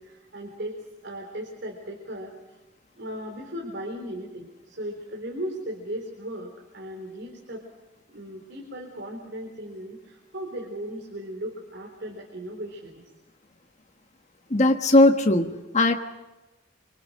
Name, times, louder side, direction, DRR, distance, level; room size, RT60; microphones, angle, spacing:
voice 1, 0.0-2.6 3.0-7.6 8.1-13.0, equal, 60° right, 1 dB, 3.9 m, -37 dB
voice 2, 14.5-15.9, left 2 dB, 35° left, 5 dB, 1.4 m, -19 dB
26.0 x 25.5 x 6.4 m, 1.1 s
head